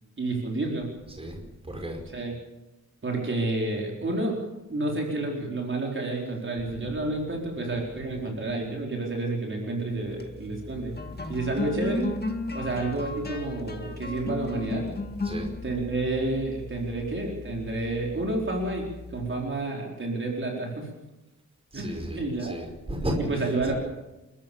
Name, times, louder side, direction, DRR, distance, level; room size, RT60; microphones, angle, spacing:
voice 1, 0.2-0.9 2.1-2.3 3.0-4.4 4.7-10.9 11.3-12.1 12.5-14.8 15.6-20.9 21.7-22.5 23.3-23.7, right 2 dB, 40° right, 0 dB, 4.5 m, -30 dB
voice 2, 1.1-2.0 6.7-7.1 7.7-8.4 12.7-12.9 15.2-15.5 21.7-23.7, equal, 20° right, 2 dB, 5.1 m, -35 dB
sound 1, 10.0-19.6, left 2 dB, 35° left, 2.0 m, -36 dB
29.5 x 14.0 x 7.1 m, 1.0 s
wide cardioid pair, 165°, 30 cm